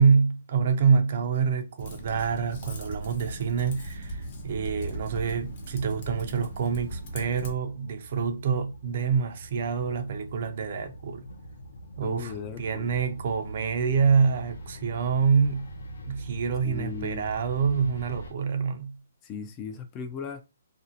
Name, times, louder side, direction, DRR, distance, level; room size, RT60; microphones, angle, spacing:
voice 1, 0.0-11.3 12.0-15.7 16.0-19.0, right 6 dB, 50° right, 0.4 m, -26 dB
Typing, 1.8-7.5, right 1 dB, 40° left, 0.8 m, -38 dB
sound 1, 5.1-18.3, right 1 dB, 80° left, 0.7 m, -43 dB
voice 2, 12.0-12.9 16.6-17.3 19.2-20.4, left 6 dB, 20° left, 0.3 m, -37 dB
2.5 x 2.0 x 2.7 m
hypercardioid pair, 155°, 0 cm